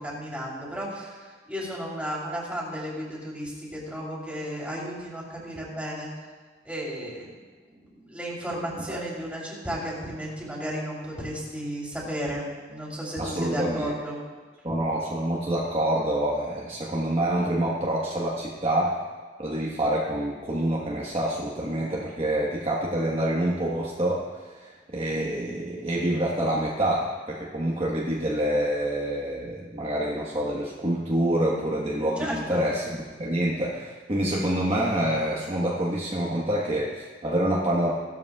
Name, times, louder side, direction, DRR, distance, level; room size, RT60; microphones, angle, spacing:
voice 1, 0.0-6.1 6.6-7.3 7.7-14.2 32.2-32.7, equal, 10° right, -5 dB, 3.3 m, -34 dB
voice 2, 13.2-13.9 14.6-19.0 19.4-37.9, right 1 dB, 35° right, -5 dB, 1.3 m, -27 dB
16.5 x 13.0 x 2.4 m, 1.4 s
head